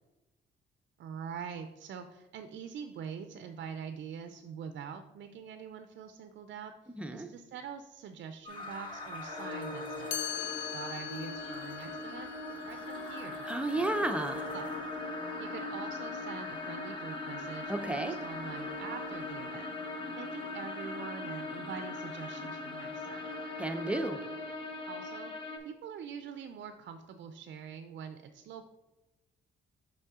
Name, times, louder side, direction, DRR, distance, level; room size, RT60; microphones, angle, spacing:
voice 1, 1.0-6.7 7.1-10.3 10.7-12.3 12.6-13.5 14.5-14.7 15.4-17.7 18.0-19.7 20.2-23.3 24.9-25.3 25.6-28.6, right 7 dB, 65° right, 8 dB, 0.4 m, -44 dB
voice 2, 7.0-7.3 13.4-14.5 17.7-18.1 23.6-24.2, right 2 dB, 5° right, 7 dB, 0.6 m, -32 dB
sound 1, 8.5-25.6, left 2 dB, 25° left, 1.3 m, -40 dB
Chime, 10.1-16.0, left 10 dB, 65° left, 0.4 m, -43 dB
5.5 x 5.4 x 3.6 m, 1.0 s
cardioid pair, 90°, 20 cm